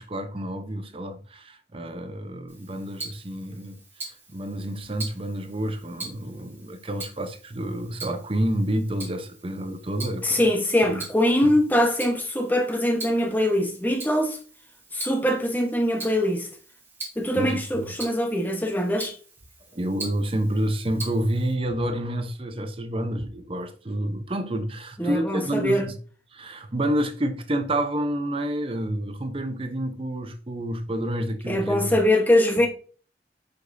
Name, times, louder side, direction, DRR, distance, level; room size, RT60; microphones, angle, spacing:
voice 1, 0.0-10.5 10.9-11.0 11.4-11.5 17.3-17.6 19.7-26.0 26.3-31.9, right 1 dB, 30° right, 0.7 m, -29 dB
Tick-tock, 2.5-21.5, right 3 dB, 10° right, 1.9 m, -43 dB
voice 2, 10.2-14.4 14.9-16.5 17.2-19.2 25.0-25.9 31.5-32.7, left 1 dB, 10° left, 1.1 m, -23 dB
8.1 x 5.3 x 2.6 m
head